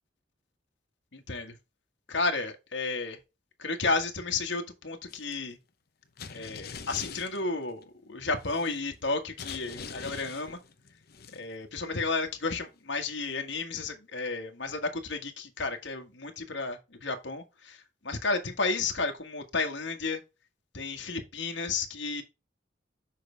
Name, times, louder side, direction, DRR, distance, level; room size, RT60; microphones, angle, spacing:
voice 1, 1.1-1.5 2.1-3.2 3.6-5.6 6.3-10.6 11.3-20.2 20.7-22.2, left 3 dB, 85° left, 1.7 m, -32 dB
sound 1, 5.1-5.4 6.2-7.8 8.3-9.0 9.4-11.7 12.0-12.3, left 5 dB, 60° left, 1.0 m, -43 dB
7.7 x 5.8 x 3.4 m
head